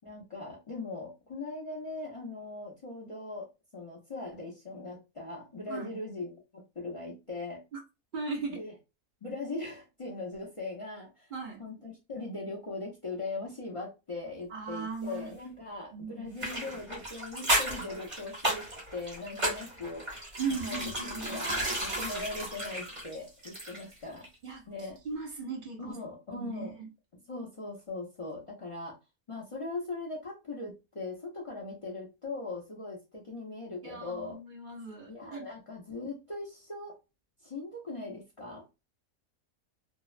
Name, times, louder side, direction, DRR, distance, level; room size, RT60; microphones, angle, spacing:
voice 1, 0.0-7.6 8.5-8.7 9.2-11.3 11.6-20.1 20.6-24.3 24.7-25.0 25.8-26.7 27.1-29.0 29.3-34.4 35.1-37.0 37.4-38.7, left 3 dB, 60° left, 0.3 m, -40 dB
voice 2, 8.1-8.6 11.3-11.6 14.5-15.3 15.9-16.3 20.4-21.4 24.4-24.6 25.0-26.0 26.3-26.9 33.8-35.5, right 4 dB, 60° right, 0.5 m, -37 dB
sound 1, 16.4-24.0 24.2-24.3, right 1 dB, 30° right, 1.2 m, -33 dB
2.6 x 2.1 x 2.4 m
omnidirectional pair, 1.6 m